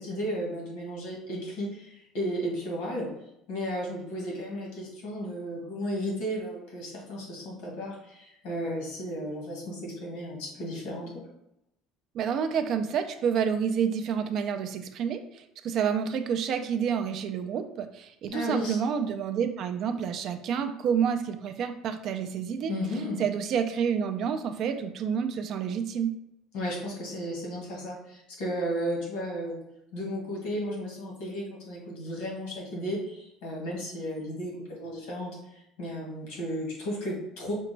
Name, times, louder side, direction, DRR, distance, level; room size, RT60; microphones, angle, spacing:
voice 1, 0.0-3.1 3.5-11.2 18.3-18.8 22.7-23.2 26.5-29.6 29.9-35.4 35.8-37.5, equal, 70° left, -2 dB, 1.4 m, -34 dB
voice 2, 12.1-22.7 23.2-26.1, right 7 dB, 40° right, 7 dB, 0.3 m, -29 dB
4.9 x 2.2 x 3.2 m, 0.81 s
cardioid pair, 180°, 0 cm